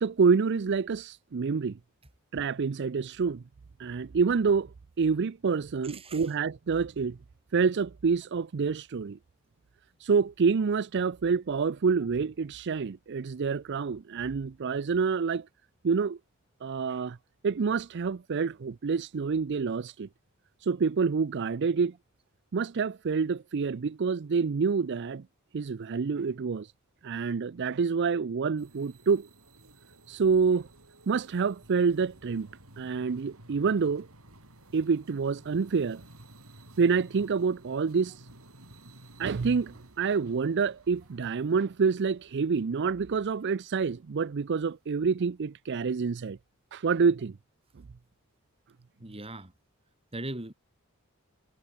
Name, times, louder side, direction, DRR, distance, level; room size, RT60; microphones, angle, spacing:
voice 1, 0.0-1.8 2.3-3.4 3.8-4.7 5.0-7.2 7.5-9.2 10.0-15.5 15.8-16.2 16.6-17.2 17.4-20.1 20.6-21.9 22.5-25.2 25.5-26.7 27.0-29.3 30.1-30.7 31.1-32.5 32.8-34.1 34.7-36.0 36.8-38.2 39.2-46.4 46.7-47.4, right 5 dB, 55° right, 0.5 m, -27 dB
voice 2, 5.8-6.3 49.0-49.5 50.1-50.5, right 1 dB, 25° right, 3.1 m, -39 dB
sound 1, 28.6-43.9, right 1 dB, 85° right, 7.4 m, -54 dB
head